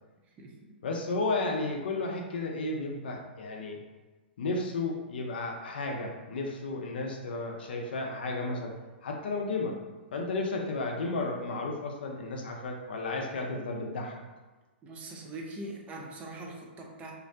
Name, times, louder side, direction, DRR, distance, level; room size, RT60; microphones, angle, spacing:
voice 1, 0.8-3.8 4.4-8.7 9.0-9.8 10.1-14.2, left 3 dB, 60° left, 1 dB, 0.4 m, -33 dB
voice 2, 14.8-17.1, right 2 dB, 20° right, 0 dB, 0.4 m, -42 dB
2.5 x 2.0 x 2.5 m, 1.2 s
figure-of-eight pair, 110°, 6 cm